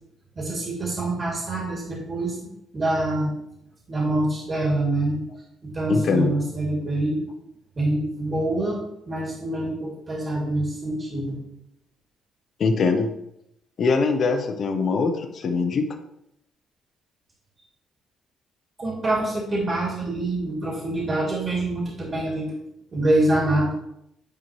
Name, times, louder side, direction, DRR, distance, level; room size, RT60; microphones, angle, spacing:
voice 1, 0.3-3.3 3.9-5.2 5.6-7.2 7.8-8.8 9.1-11.4 18.8-22.5 22.9-23.7, right 1 dB, 35° right, -3 dB, 2.9 m, -25 dB
voice 2, 5.9-6.3 12.6-13.1 13.8-15.9, left 4 dB, 55° left, 6 dB, 0.9 m, -22 dB
10.0 x 4.5 x 3.2 m, 0.78 s
cardioid pair, 90°, 0 cm